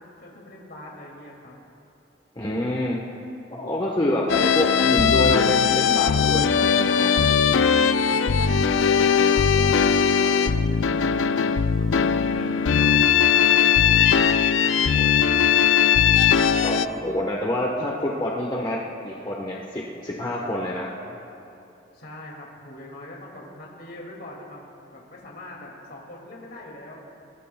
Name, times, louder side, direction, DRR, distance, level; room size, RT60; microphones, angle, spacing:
voice 1, 0.0-1.6 7.9-11.2 11.8-16.0 21.9-24.6 24.9-27.0, left 1 dB, 55° left, -2 dB, 2.3 m, -42 dB
voice 2, 2.3-3.0 3.5-7.0 16.6-18.8 19.0-20.9, left 1 dB, 25° left, -3 dB, 1.1 m, -27 dB
sound 1, 4.3-16.9, left 7 dB, 85° left, 0.5 m, -19 dB
22.5 x 20.0 x 2.3 m, 2.9 s
head